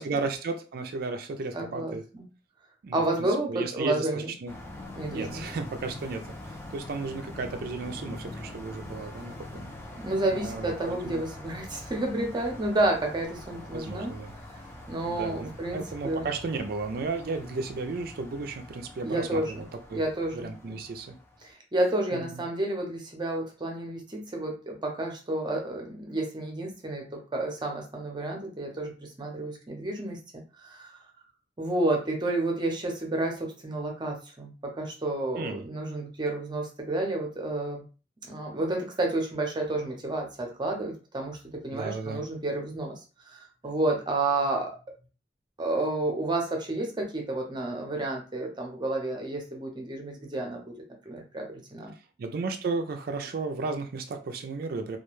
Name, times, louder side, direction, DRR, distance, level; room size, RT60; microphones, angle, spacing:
voice 1, 0.0-2.0 2.8-4.5 5.1-9.7 10.3-11.2 13.7-14.3 15.1-20.0 20.3-21.2 22.1-22.4 35.4-35.7 41.7-42.2 52.2-55.0, right 3 dB, 55° right, 6 dB, 0.4 m, -34 dB
voice 2, 1.5-2.2 2.9-4.3 5.0-5.4 10.0-14.2 14.9-16.3 19.0-19.7 19.9-20.8 21.4-31.0 31.6-37.8 38.2-41.4 41.6-43.0 43.3-44.7 45.6-50.7 51.0-51.9, right 2 dB, 25° right, 2 dB, 0.7 m, -30 dB
sound 1, 4.5-21.5, left 1 dB, 15° left, 0.5 m, -44 dB
2.3 x 2.2 x 3.0 m, 0.34 s
head